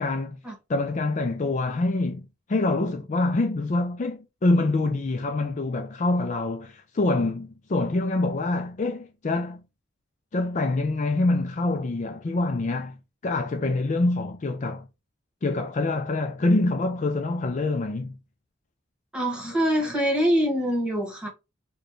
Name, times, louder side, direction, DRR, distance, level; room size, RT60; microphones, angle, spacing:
voice 1, 0.0-0.4 0.7-9.6 10.3-13.0 13.2-14.9 15.4-18.2, left 2 dB, 40° left, 0.4 m, -25 dB
voice 2, 19.1-21.3, equal, 5° right, 1.5 m, -24 dB
4.4 x 2.2 x 3.0 m
head